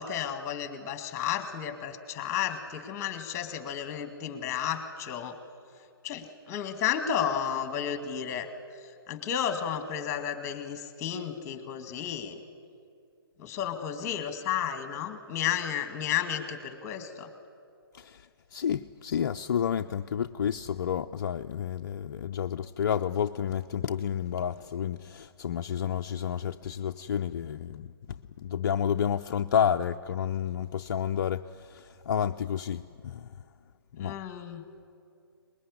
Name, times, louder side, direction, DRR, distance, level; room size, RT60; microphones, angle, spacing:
voice 1, 0.0-5.4 6.0-8.5 8.8-12.4 13.4-17.3 34.0-34.6, left 9 dB, 20° left, 2.1 m, -32 dB
voice 2, 18.5-27.9 28.4-31.4 31.7-33.3 33.9-34.1, left 8 dB, 50° left, 0.5 m, -30 dB
24.0 x 21.0 x 9.8 m
figure-of-eight pair, 135°, 13 cm